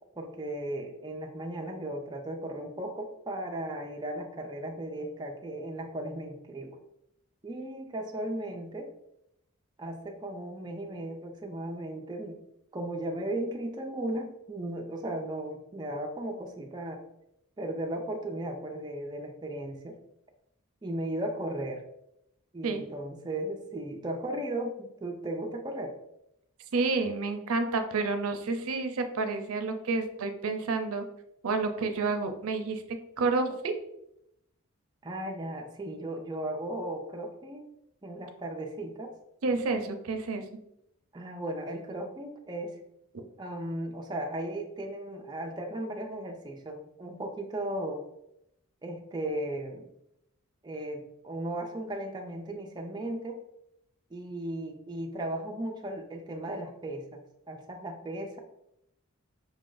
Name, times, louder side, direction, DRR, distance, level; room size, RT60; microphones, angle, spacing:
voice 1, 0.2-6.8 7.4-8.9 9.8-12.4 12.7-17.0 17.6-20.0 20.8-21.8 22.5-25.9 35.0-37.7 38.0-39.1 41.1-42.8 43.4-48.0 48.8-49.9 50.6-53.4 54.1-58.4, right 1 dB, 20° right, 1 dB, 0.4 m, -36 dB
voice 2, 26.7-31.0 31.4-32.8 33.2-33.7 39.4-40.4 43.1-43.2, right 3 dB, 70° right, 7 dB, 0.5 m, -29 dB
5.1 x 2.5 x 3.7 m, 0.80 s
head